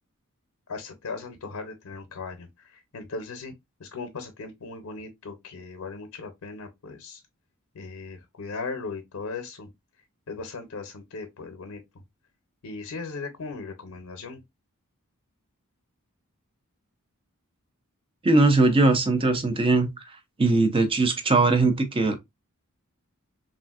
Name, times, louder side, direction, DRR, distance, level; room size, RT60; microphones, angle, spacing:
voice 1, 0.7-3.5 3.8-7.2 7.7-9.7 10.3-11.8 12.6-14.4, left 4 dB, 80° left, 0.6 m, -38 dB
voice 2, 18.2-19.9 20.4-22.1, right 3 dB, 25° right, 0.5 m, -20 dB
3.2 x 2.5 x 2.3 m
head